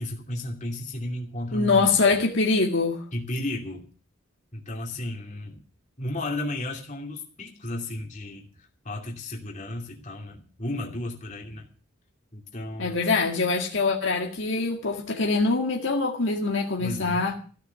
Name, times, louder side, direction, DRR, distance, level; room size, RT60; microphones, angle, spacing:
voice 1, 0.0-1.9 3.1-3.9 4.5-5.6 6.0-8.5 8.8-11.6 12.3-13.0 16.8-17.3, left 1 dB, 40° left, 2.8 m, -33 dB
voice 2, 1.5-3.0 12.8-17.3, left 3 dB, 65° left, 1.9 m, -24 dB
15.0 x 6.6 x 9.4 m
head